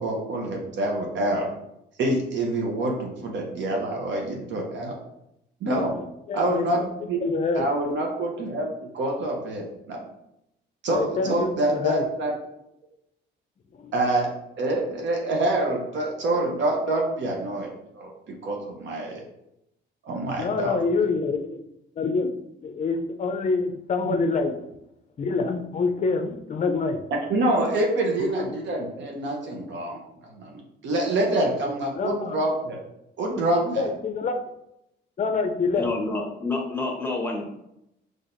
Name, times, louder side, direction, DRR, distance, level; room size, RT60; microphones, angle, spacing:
voice 1, 0.0-1.5 2.0-5.0 5.6-5.9 6.3-7.2 7.5-10.1 10.8-12.3 13.9-14.3 14.6-17.7 17.9-19.2 20.0-20.8 24.0-24.2 27.3-32.8 33.2-33.9, right 1 dB, 65° right, 0 dB, 0.8 m, -26 dB
voice 2, 5.6-6.7 7.2-7.7 10.9-12.0 13.7-13.9 20.4-21.6 22.0-22.3 22.6-24.5 25.2-27.0 28.2-28.5 31.9-32.4 33.8-34.4 35.2-35.9, left 4 dB, 40° left, 7 dB, 0.5 m, -26 dB
voice 3, 35.8-37.4, left 2 dB, 10° left, 0 dB, 1.0 m, -28 dB
4.1 x 3.2 x 2.6 m, 0.82 s
cardioid pair, 90°, 20 cm